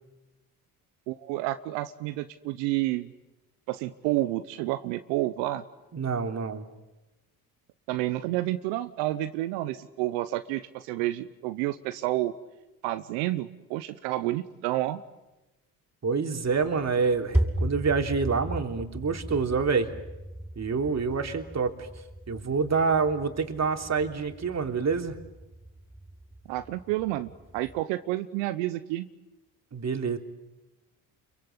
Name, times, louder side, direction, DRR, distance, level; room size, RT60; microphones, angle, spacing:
voice 1, 1.1-3.1 3.7-5.6 7.9-12.3 12.8-15.0 26.5-29.1, right 16 dB, 85° right, 10 dB, 1.0 m, -30 dB
voice 2, 5.9-6.6 16.0-19.9 20.6-21.9 22.3-25.2 29.7-30.2, right 5 dB, 40° right, 5 dB, 3.5 m, -27 dB
sound 1, 16.5-27.8, right 1 dB, 5° right, 7.2 m, -36 dB
30.0 x 23.5 x 8.2 m, 1.0 s
hypercardioid pair, 60°, 42 cm